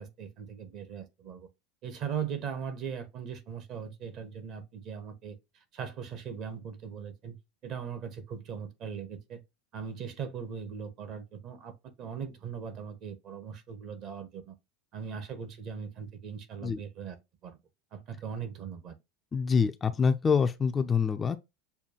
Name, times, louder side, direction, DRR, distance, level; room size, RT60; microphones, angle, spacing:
voice 1, 0.0-1.5 1.8-5.4 5.7-7.4 7.6-9.4 9.7-14.5 14.9-17.2 17.4-17.6 17.9-19.0, right 7 dB, 45° right, 1.0 m, -39 dB
voice 2, 19.3-21.4, left 6 dB, 20° left, 0.4 m, -26 dB
6.8 x 2.3 x 2.8 m
figure-of-eight pair, 80°, 0 cm